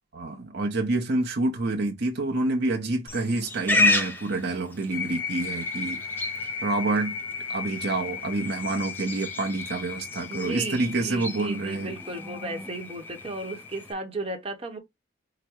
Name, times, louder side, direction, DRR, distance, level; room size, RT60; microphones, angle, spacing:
voice 1, 0.1-6.0 6.6-7.1 7.5-11.9, right 2 dB, 60° right, 0.9 m, -27 dB
Livestock farm animals working animals, 3.1-13.9, left 2 dB, 10° left, 0.7 m, -32 dB
sound 1, 4.9-13.9, left 6 dB, 90° left, 1.2 m, -37 dB
voice 2, 10.3-14.8, right 2 dB, 30° right, 1.0 m, -35 dB
5.0 x 2.2 x 4.5 m
head